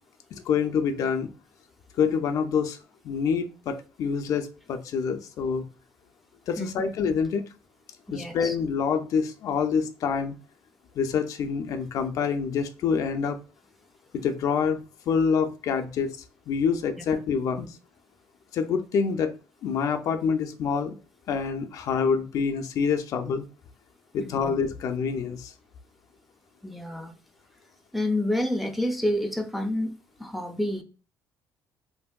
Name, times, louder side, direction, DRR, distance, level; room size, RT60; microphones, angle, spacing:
voice 1, 0.3-1.3 2.0-2.8 3.0-5.7 6.5-7.4 8.1-10.4 11.0-13.4 14.1-16.2 16.5-17.7 18.5-19.3 19.6-20.9 21.3-23.4 24.1-25.5, left 6 dB, 60° left, 0.4 m, -26 dB
voice 2, 8.1-8.6 24.2-24.5 26.6-27.1 27.9-30.8, left 1 dB, ahead, 0.4 m, -29 dB
2.9 x 2.6 x 2.2 m
cardioid pair, 100°, 7 cm